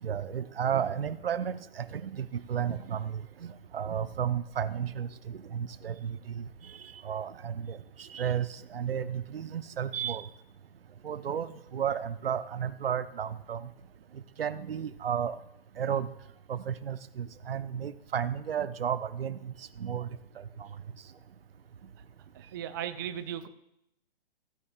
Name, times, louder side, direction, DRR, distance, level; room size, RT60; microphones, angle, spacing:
voice 1, 0.0-10.3 11.0-13.7 14.1-15.4 15.8-16.1 16.5-20.1 20.4-20.7, right 8 dB, 70° right, 14 dB, 0.7 m, -33 dB
voice 2, 22.3-23.5, right 10 dB, 25° right, 11 dB, 0.4 m, -36 dB
15.5 x 9.6 x 2.5 m, 0.79 s
figure-of-eight pair, 125°, 30 cm